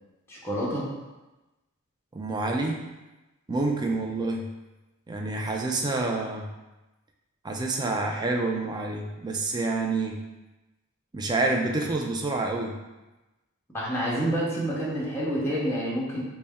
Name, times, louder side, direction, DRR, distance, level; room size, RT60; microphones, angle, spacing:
voice 1, 0.3-0.9 13.7-16.2, equal, 10° left, -7 dB, 0.7 m, -28 dB
voice 2, 2.1-2.8 3.5-4.4 5.1-6.5 7.4-10.2 11.1-12.8, right 2 dB, 20° right, 1 dB, 0.4 m, -28 dB
4.0 x 2.1 x 3.5 m, 1.1 s
head